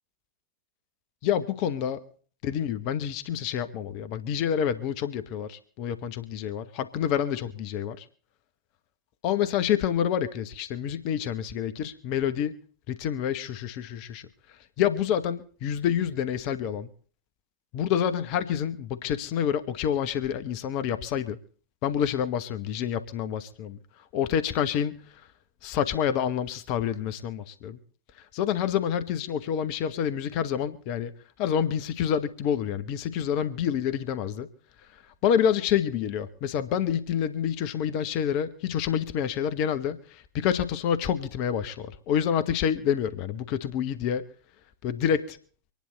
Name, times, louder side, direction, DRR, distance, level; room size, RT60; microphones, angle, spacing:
voice 1, 1.2-2.0 2.4-8.1 9.2-12.6 12.9-14.3 14.8-16.9 17.7-21.4 21.8-23.8 24.1-25.0 25.6-27.8 28.3-31.1 31.4-34.5 35.2-44.2 44.8-45.4, left 9 dB, 45° left, 12 dB, 1.1 m, -28 dB
25.0 x 10.5 x 4.0 m, 0.43 s
figure-of-eight pair, 90°, 0 cm